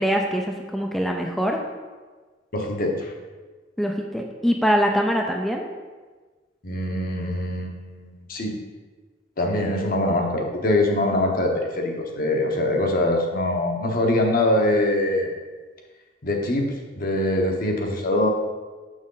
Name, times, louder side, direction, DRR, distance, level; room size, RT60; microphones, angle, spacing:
voice 1, 0.0-1.6 3.8-5.6, equal, ahead, 1 dB, 0.4 m, -23 dB
voice 2, 2.5-3.1 6.6-8.5 9.4-15.3 16.2-16.7 17.0-18.3, left 1 dB, 50° left, 2 dB, 1.0 m, -23 dB
6.3 x 6.2 x 3.8 m, 1.4 s
head